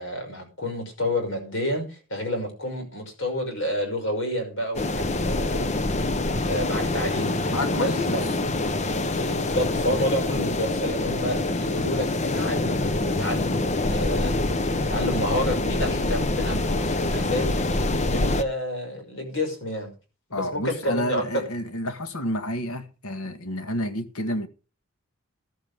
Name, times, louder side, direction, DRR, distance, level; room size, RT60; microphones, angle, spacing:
voice 1, 0.0-5.7 6.2-8.4 9.1-12.1 12.3-13.6 13.9-14.4 14.9-17.5 18.0-19.9 20.3-21.4 23.6-23.7, left 1 dB, 60° left, 5.8 m, -29 dB
sound 1, 4.7-18.4, left 2 dB, 35° left, 0.8 m, -25 dB
voice 2, 7.5-8.2 20.3-24.5, left 1 dB, 90° left, 1.7 m, -30 dB
14.0 x 13.0 x 3.5 m
head